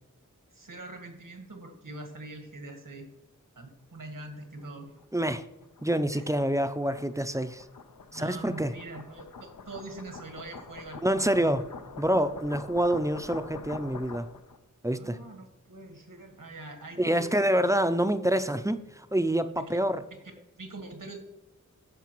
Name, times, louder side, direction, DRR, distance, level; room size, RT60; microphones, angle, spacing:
voice 1, 0.5-3.1 3.6-4.9 6.1-6.2 8.1-11.6 15.0-17.5 19.6-19.8 20.2-21.2, right 2 dB, 85° right, 5 dB, 1.4 m, -44 dB
sound 1, 4.6-14.6, left 4 dB, 85° left, 0.7 m, -45 dB
voice 2, 5.1-5.4 5.8-7.6 8.1-8.7 11.0-11.6 12.0-14.3 14.8-15.2 17.0-20.0, right 1 dB, 10° right, 10 dB, 0.4 m, -27 dB
14.0 x 4.7 x 3.0 m, 0.93 s
wide cardioid pair, 65°, 32 cm